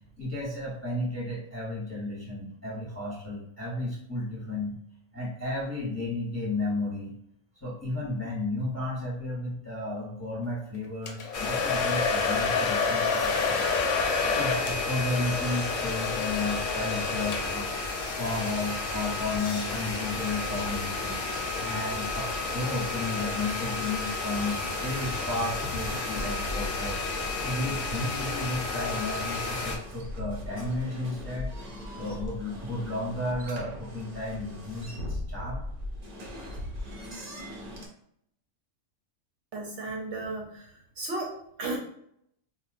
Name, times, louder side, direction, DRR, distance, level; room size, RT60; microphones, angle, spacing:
voice 1, 0.2-4.8 5.1-7.1 7.6-13.7 14.2-17.7 18.1-21.2 21.6-27.0 27.4-31.5 31.9-35.6, left 2 dB, 15° left, -6 dB, 0.8 m, -33 dB
Domestic sounds home sounds, 11.1-17.8, left 5 dB, 70° left, 0.8 m, -29 dB
sound 1, 11.3-29.8, left 3 dB, 45° left, 0.4 m, -32 dB
sound 2, 24.3-37.9, left 1 dB, 50° right, 0.5 m, -40 dB
voice 2, 39.5-41.8, right 2 dB, 65° right, -1 dB, 0.9 m, -35 dB
4.1 x 2.2 x 2.5 m, 0.71 s
omnidirectional pair, 1.4 m